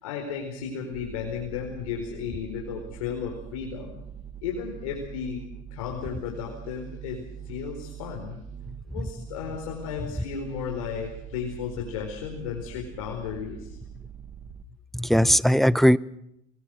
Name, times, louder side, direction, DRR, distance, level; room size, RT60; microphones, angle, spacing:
voice 1, 0.0-4.0 4.4-8.4 8.8-13.8, left 7 dB, 90° left, 0 dB, 4.5 m, -34 dB
sound 1, 0.9-14.6, right 8 dB, 35° right, 1.4 m, -43 dB
voice 2, 8.7-9.1 14.9-16.0, equal, ahead, 18 dB, 0.7 m, -20 dB
22.0 x 20.5 x 6.5 m, 0.78 s
supercardioid pair, 100°, 17 cm